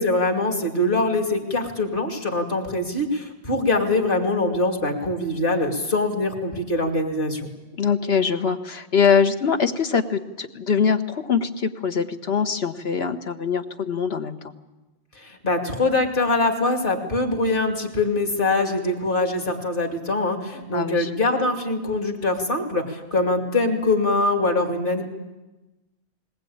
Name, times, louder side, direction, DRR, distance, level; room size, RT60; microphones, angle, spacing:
voice 1, 0.0-7.5 15.2-25.0, left 2 dB, 55° left, 3 dB, 2.7 m, -23 dB
voice 2, 7.7-14.5 20.7-21.1, left 6 dB, 70° left, 8 dB, 1.5 m, -23 dB
21.0 x 19.0 x 8.8 m, 1.1 s
omnidirectional pair, 1.1 m